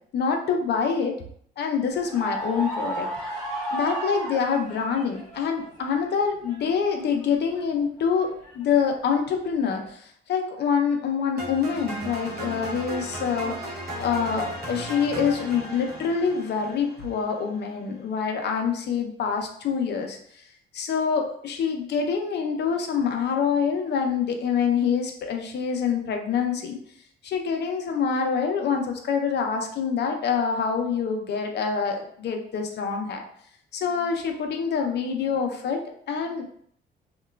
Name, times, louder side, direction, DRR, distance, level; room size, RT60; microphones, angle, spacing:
voice 1, 0.1-1.2 1.6-3.1 3.7-20.4 20.7-26.8 27.2-33.3 33.7-35.8 36.1-36.5, left 6 dB, 60° left, 4 dB, 0.5 m, -26 dB
sound 1, 1.9-5.5 5.8-7.6 8.0-8.9 9.6-9.9, right 1 dB, 5° left, 0.8 m, -34 dB
sound 2, 11.4-17.5, equal, 50° right, 0.7 m, -35 dB
2.9 x 2.2 x 2.2 m, 0.63 s
cardioid pair, 90°, 20 cm